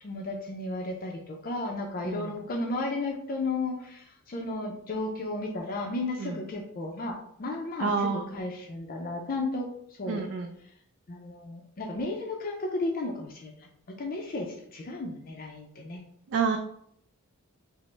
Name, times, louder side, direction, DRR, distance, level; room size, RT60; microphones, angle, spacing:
voice 1, 0.0-10.2 11.1-16.0, left 2 dB, 40° left, 1 dB, 0.5 m, -34 dB
voice 2, 7.8-8.3 10.1-10.5 16.3-16.6, right 5 dB, 55° right, 4 dB, 0.3 m, -28 dB
5.0 x 2.0 x 3.2 m, 0.71 s
head